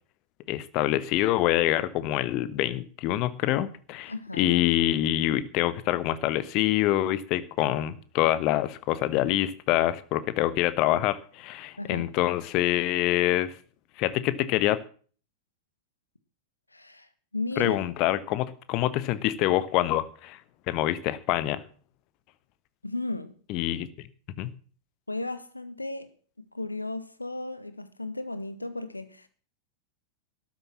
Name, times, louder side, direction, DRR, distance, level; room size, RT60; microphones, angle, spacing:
voice 1, 0.5-13.5 14.0-14.8 17.6-20.4 20.7-21.6 23.5-24.1 24.4-24.5, left 14 dB, 40° left, 1.3 m, -26 dB
voice 2, 4.1-4.5 11.8-12.1 16.7-17.1 17.3-17.8 22.8-23.3 25.1-26.1 26.5-29.3, left 2 dB, 85° left, 1.5 m, -34 dB
13.0 x 10.5 x 7.3 m
figure-of-eight pair, 90°, 0 cm